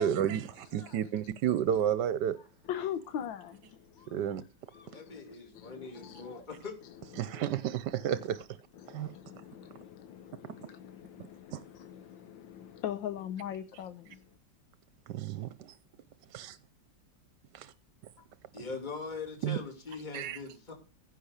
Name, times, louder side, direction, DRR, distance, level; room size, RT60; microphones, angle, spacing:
voice 1, 0.0-2.4 4.1-4.4 7.2-8.5 8.9-9.1 11.5-11.6 15.1-15.8 17.5-17.7 19.4-19.6 20.1-20.4, right 10 dB, 70° right, 1.3 m, -31 dB
voice 2, 2.7-4.5 4.7-6.3 7.2-7.4 8.0-8.1 8.8-14.2, left 10 dB, 85° left, 1.7 m, -42 dB
voice 3, 4.7-6.8 18.5-20.7, left 4 dB, 25° left, 3.0 m, -42 dB
16.0 x 6.0 x 6.6 m
omnidirectional pair, 2.0 m